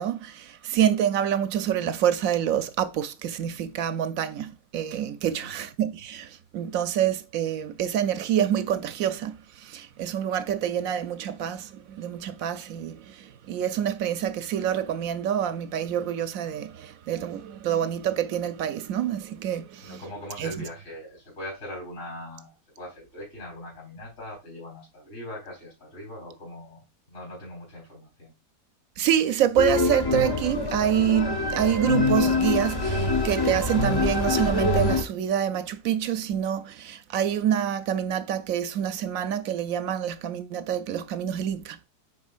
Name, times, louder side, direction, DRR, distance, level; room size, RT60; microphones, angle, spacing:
voice 1, 0.0-20.0 20.4-20.5 29.0-41.8, right 10 dB, 70° right, 0.9 m, -27 dB
voice 2, 5.2-5.5 19.8-28.3, left 1 dB, 45° left, 4.3 m, -41 dB
sound 1, 29.6-35.0, left 3 dB, 30° left, 0.4 m, -25 dB
9.8 x 4.0 x 2.4 m
omnidirectional pair, 1.7 m